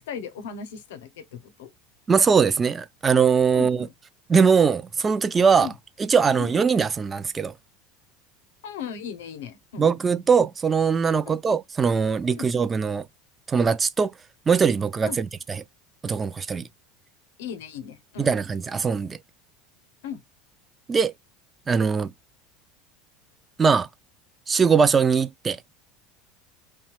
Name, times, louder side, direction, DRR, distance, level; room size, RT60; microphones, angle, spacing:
voice 1, 0.1-1.7 3.5-3.9 5.6-5.7 6.4-6.5 8.6-9.9 11.3-11.4 12.3-12.5 15.1-15.2 17.4-18.3 20.0-20.2, left 7 dB, 75° left, 0.7 m, -37 dB
voice 2, 2.1-3.9 4.3-5.7 6.0-7.5 9.8-13.0 13.5-14.1 14.5-15.3 16.0-16.7 18.2-19.2 20.9-21.1 21.7-22.1 23.6-23.9 24.5-25.6, right 6 dB, 25° right, 0.3 m, -21 dB
2.6 x 2.2 x 3.0 m
hypercardioid pair, 85°, 0 cm